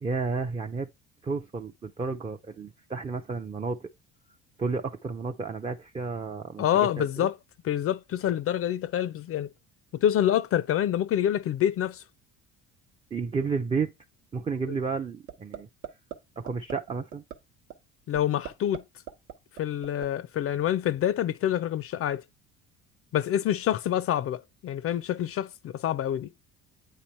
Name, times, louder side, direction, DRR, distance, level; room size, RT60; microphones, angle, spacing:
voice 1, 0.0-0.9 1.2-3.9 4.6-6.7 7.0-7.3 13.1-13.9 14.3-15.7 16.4-17.2, right 4 dB, 15° right, 0.4 m, -31 dB
voice 2, 6.6-7.4 7.6-9.5 9.9-12.0 14.7-14.8 18.1-18.8 19.5-22.2 23.1-26.3, left 11 dB, 40° left, 0.4 m, -27 dB
sound 1, 15.3-15.6 15.8-16.2 16.5-16.7 17.1-17.3 17.7-17.8 18.1-18.8 19.1-20.1, right 9 dB, 75° right, 1.0 m, -38 dB
8.3 x 3.0 x 4.3 m
supercardioid pair, 80°, 34 cm